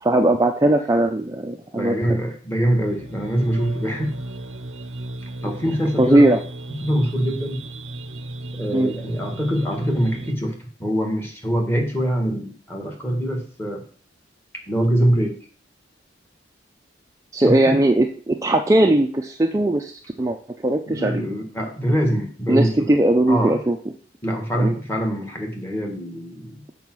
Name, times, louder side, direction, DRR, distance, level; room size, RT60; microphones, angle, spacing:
voice 1, 0.0-2.0 6.0-6.4 8.7-8.9 17.3-19.9 20.2-20.4 20.6-21.2 22.5-23.8 24.6-24.7, right 1 dB, 15° right, 3 dB, 0.5 m, -18 dB
voice 2, 1.7-4.2 5.4-6.3 6.7-7.6 8.5-13.8 14.7-15.4 17.4-17.8 20.9-22.8 23.3-23.6 24.2-26.6, equal, 10° left, 2 dB, 1.7 m, -24 dB
sound 1, 2.5-10.3, right 2 dB, 80° right, 0.7 m, -35 dB
7.2 x 5.0 x 6.1 m, 0.43 s
head